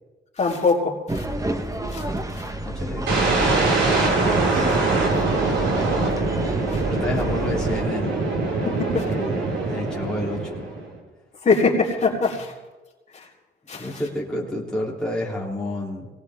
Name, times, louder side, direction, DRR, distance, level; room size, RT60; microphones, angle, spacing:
voice 1, 0.4-1.2 1.9-2.0 4.5-4.6 6.7-6.8 8.6-9.0 11.4-12.5 13.1-13.2 13.7-13.9, left 4 dB, 35° left, -3 dB, 3.8 m, -22 dB
sound 1, 1.1-7.8, right 1 dB, 15° right, 1.2 m, -30 dB
voice 2, 2.6-6.0 6.8-8.3 8.9-10.6 12.1-12.2 13.8-16.1, left 1 dB, 5° left, -5 dB, 3.1 m, -31 dB
sound 2, 3.1-10.9, right 3 dB, 75° right, 5.4 m, -23 dB
19.0 x 17.5 x 3.6 m, 1.2 s
cardioid pair, 90°, 20 cm